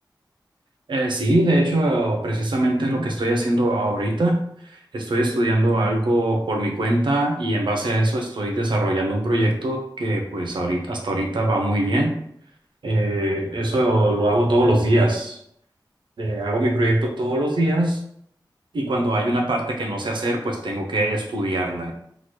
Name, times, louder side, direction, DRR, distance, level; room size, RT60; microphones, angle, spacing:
voice 1, 0.9-4.4 4.6-12.1 12.8-15.4 16.2-18.0 18.7-21.9, right 1 dB, 85° right, 1 dB, 0.6 m, -22 dB
2.9 x 2.3 x 3.0 m, 0.69 s
wide cardioid pair, 55°, 8 cm